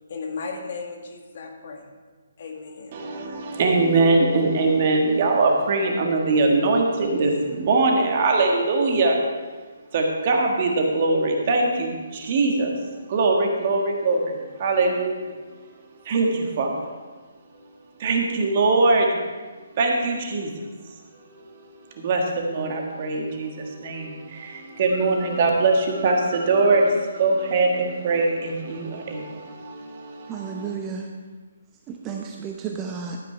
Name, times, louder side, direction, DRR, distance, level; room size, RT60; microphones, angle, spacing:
voice 1, 0.1-1.9 2.4-3.0, left 4 dB, 50° left, 2 dB, 1.8 m, -35 dB
voice 2, 2.9-9.2 9.9-12.7 13.1-15.4 16.0-16.7 18.0-19.2 19.8-20.7 21.3-21.4 21.9-30.7, right 3 dB, 40° right, 1 dB, 1.7 m, -22 dB
voice 3, 30.3-31.1 31.9-33.2, right 6 dB, 20° right, 1 dB, 0.8 m, -32 dB
13.0 x 8.9 x 3.4 m, 1.4 s
figure-of-eight pair, 140°, 0 cm